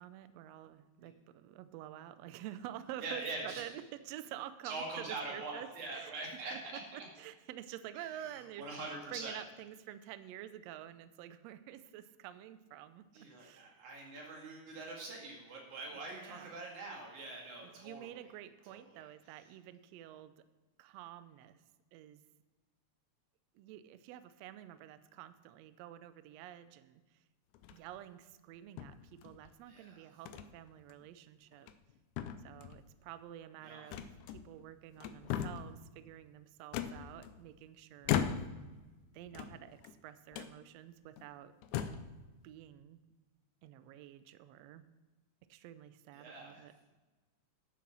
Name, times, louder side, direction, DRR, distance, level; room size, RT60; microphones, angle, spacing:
voice 1, 0.0-6.1 6.5-13.1 13.4-13.8 15.9-16.7 17.6-20.4 20.8-21.6 21.9-22.2 23.5-27.2 27.7-31.7 32.4-38.2 39.1-41.5 42.4-43.0 43.6-44.9 45.5-46.7, right 12 dB, 90° right, 13 dB, 1.4 m, -49 dB
voice 2, 3.0-3.6 4.6-6.5 8.2-9.4 13.1-18.2 18.7-19.0 29.7-30.0 33.6-33.8 46.1-46.6, right 3 dB, 65° right, -1 dB, 3.6 m, -44 dB
sound 1, 27.5-28.0 28.8-29.5 30.3-30.5 30.9-31.0 31.5-31.9 32.2-32.9 33.9-34.6 35.0-35.8 36.7-37.6 38.0-38.7 39.3-39.9 40.3-40.5 41.2-41.3 41.6-42.1, left 9 dB, 80° left, 2.0 m, -38 dB
11.0 x 7.2 x 6.0 m, 1.2 s
omnidirectional pair, 3.7 m